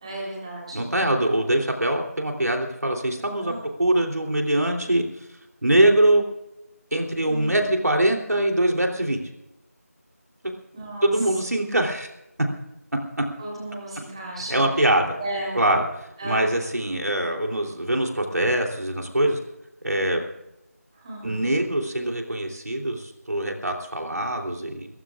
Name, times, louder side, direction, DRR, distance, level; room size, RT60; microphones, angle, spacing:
voice 1, 0.0-0.9 3.4-3.6 7.2-7.6 10.7-11.1 13.4-14.7 15.1-15.6 16.2-16.4 21.0-21.4, right 1 dB, 20° right, -4 dB, 3.7 m, -34 dB
voice 2, 0.7-3.5 3.8-5.0 5.6-6.2 6.9-9.2 11.0-12.1 13.2-13.3 14.5-15.2 15.5-19.4 19.8-20.2 21.2-24.9, right 1 dB, 80° right, 2 dB, 3.2 m, -23 dB
27.5 x 15.0 x 2.5 m, 0.90 s
figure-of-eight pair, 170°, 9 cm